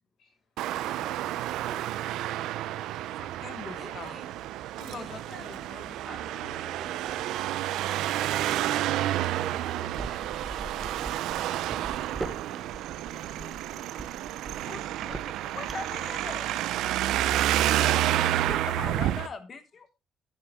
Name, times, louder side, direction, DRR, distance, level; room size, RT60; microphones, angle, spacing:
voice 1, 0.2-3.1 13.0-14.0 15.4-17.3, left 4 dB, 50° left, 5.8 m, -58 dB
Traffic noise roadway noise, 0.6-19.3, right 13 dB, 75° right, 0.6 m, -30 dB
voice 2, 3.2-4.2 4.8-6.3 14.7-16.5 18.5-19.9, left 4 dB, 30° left, 1.1 m, -42 dB
voice 3, 3.7-4.3 4.8-7.9 10.7-11.2 11.6-12.6, right 1 dB, 5° left, 4.1 m, -49 dB
sound 1, 9.9-16.0, right 2 dB, 15° right, 1.0 m, -40 dB
10.5 x 9.5 x 3.6 m
cardioid pair, 175°, 0 cm